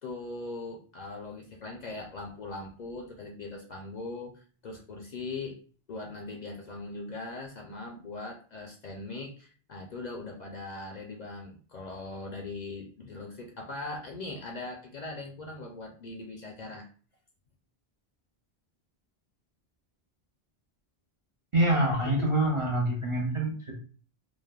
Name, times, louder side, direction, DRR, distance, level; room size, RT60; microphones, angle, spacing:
voice 1, 0.0-5.6 5.9-16.9, left 3 dB, 55° left, 0 dB, 0.5 m, -40 dB
voice 2, 21.5-23.7, right 1 dB, 45° right, -2 dB, 0.4 m, -26 dB
3.2 x 2.0 x 2.3 m, 0.41 s
omnidirectional pair, 1.1 m